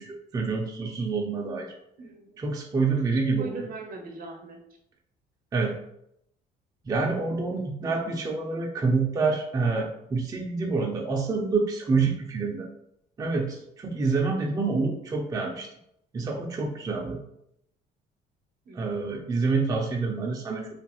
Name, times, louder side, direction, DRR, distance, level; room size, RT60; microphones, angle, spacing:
voice 1, 0.0-1.7 2.4-3.6 5.5-5.8 6.9-12.7 13.2-15.7 16.1-17.2 18.7-20.7, right 4 dB, 20° right, 0 dB, 0.4 m, -27 dB
voice 2, 2.0-2.4 3.1-4.6 18.7-18.9, right 3 dB, 60° right, 4 dB, 0.6 m, -40 dB
2.5 x 2.3 x 2.9 m, 0.76 s
cardioid pair, 110°, 17 cm